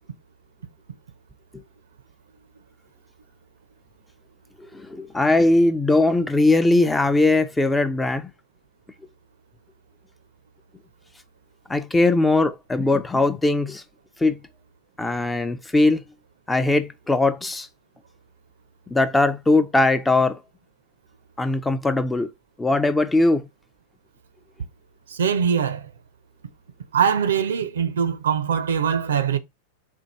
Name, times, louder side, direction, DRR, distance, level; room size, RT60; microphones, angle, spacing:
voice 1, 4.7-8.3 11.7-13.8 14.2-14.4 15.0-16.0 16.5-17.7 18.9-20.4 21.4-22.3 22.6-23.4, left 2 dB, 10° left, 0.5 m, -20 dB
voice 2, 25.2-25.8 26.9-29.4, right 7 dB, 65° right, 0.6 m, -22 dB
4.5 x 2.3 x 4.3 m
figure-of-eight pair, 90°, 0 cm